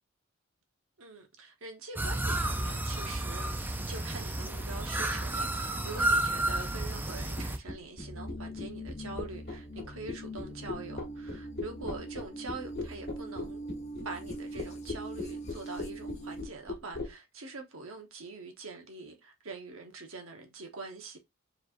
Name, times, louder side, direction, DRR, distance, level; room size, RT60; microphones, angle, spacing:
voice 1, 1.0-3.6 3.9-13.6 14.0-21.2, right 3 dB, 80° right, 1.0 m, -44 dB
sound 1, 2.0-7.6, right 1 dB, 10° right, 0.4 m, -31 dB
sound 2, 7.4-17.1, left 3 dB, 50° left, 1.2 m, -38 dB
sound 3, 8.0-16.4, right 1 dB, 35° left, 0.8 m, -42 dB
5.0 x 3.3 x 2.5 m
head